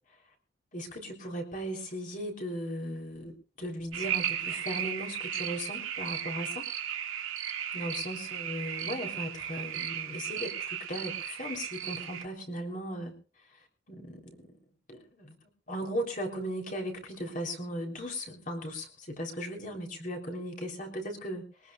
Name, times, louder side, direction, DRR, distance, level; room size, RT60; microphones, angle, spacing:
voice 1, 0.7-6.7 7.7-13.1 13.5-13.6 13.9-14.5 14.9-15.3 15.7-21.7, equal, 40° left, 2 dB, 3.6 m, -37 dB
sound 1, 3.9-12.2, right 10 dB, 80° right, 2.1 m, -35 dB
22.0 x 19.0 x 2.4 m, 0.34 s
head